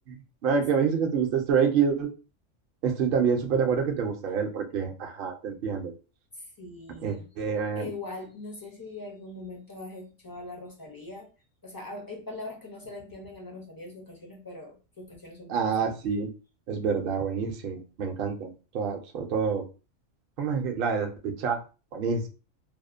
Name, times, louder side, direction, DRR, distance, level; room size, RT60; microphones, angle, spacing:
voice 1, 0.4-2.1 2.8-5.9 7.0-7.9 15.5-16.3 16.7-19.7 20.4-21.6 21.9-22.3, right 6 dB, 60° right, 3 dB, 0.6 m, -27 dB
voice 2, 6.4-7.3 7.8-11.3 11.6-16.0, left 2 dB, 35° left, -1 dB, 0.3 m, -41 dB
2.7 x 2.1 x 2.4 m, 0.33 s
omnidirectional pair, 1.3 m